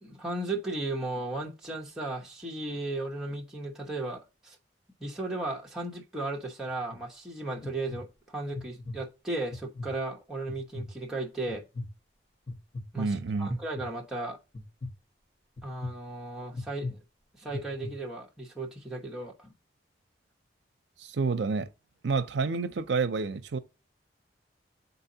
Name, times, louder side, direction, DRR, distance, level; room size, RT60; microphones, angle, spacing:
voice 1, 0.0-4.6 5.0-11.6 12.9-14.4 15.6-17.0 17.3-19.5, right 2 dB, 5° right, 0.9 m, -35 dB
sound 1, 6.9-7.0 7.6-8.0 8.5-9.0 9.5-9.9 10.5-10.9 11.5-11.9 12.5-12.8 13.5-13.9 14.5-14.9 15.6-15.9 16.5-16.9 17.5-17.9, left 2 dB, 35° left, 1.0 m, -37 dB
voice 2, 13.0-13.6 21.0-21.7 22.0-23.6, right 4 dB, 75° right, 0.5 m, -29 dB
8.8 x 4.0 x 2.7 m
head